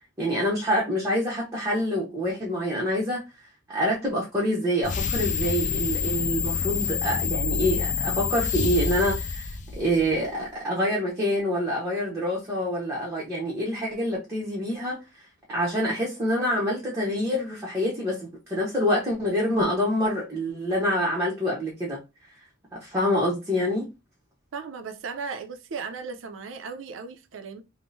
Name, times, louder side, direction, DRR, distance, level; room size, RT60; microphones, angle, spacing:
voice 1, 0.2-3.2 3.7-15.0 15.5-22.0 22.7-23.9, equal, 15° right, 0.8 m, -26 dB
sound 1, 4.8-10.3, left 5 dB, 40° left, 0.4 m, -27 dB
voice 2, 24.5-27.6, right 5 dB, 80° right, 0.5 m, -36 dB
3.5 x 2.0 x 2.5 m
head